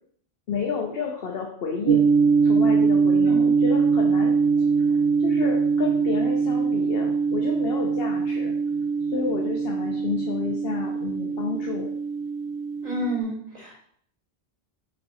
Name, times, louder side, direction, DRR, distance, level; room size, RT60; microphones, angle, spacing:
voice 1, 0.5-2.0 2.4-4.3 5.2-8.5 9.1-11.9, left 5 dB, 70° left, 1 dB, 1.1 m, -30 dB
sound 1, 1.9-13.2, right 5 dB, 70° right, 0.9 m, -22 dB
voice 2, 12.8-13.8, right 1 dB, 30° right, -6 dB, 3.1 m, -30 dB
5.8 x 5.4 x 4.3 m, 0.63 s
omnidirectional pair, 1.1 m